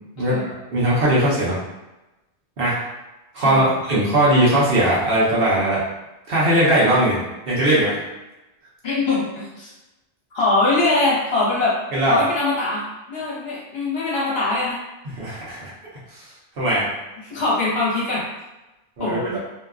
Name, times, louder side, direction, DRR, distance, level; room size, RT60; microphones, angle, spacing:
voice 1, 0.2-1.6 2.6-2.8 3.3-5.8 6.3-7.2 7.5-8.0 11.9-12.2 15.1-15.7 16.1-16.3 16.6-16.9 19.0-19.4, right 1 dB, 55° right, -7 dB, 0.9 m, -19 dB
voice 2, 8.8-9.7 10.3-11.8 12.1-14.8 17.2-18.2 19.0-19.4, left 2 dB, 60° left, -7 dB, 1.0 m, -22 dB
2.7 x 2.2 x 2.3 m, 1.0 s
omnidirectional pair, 1.2 m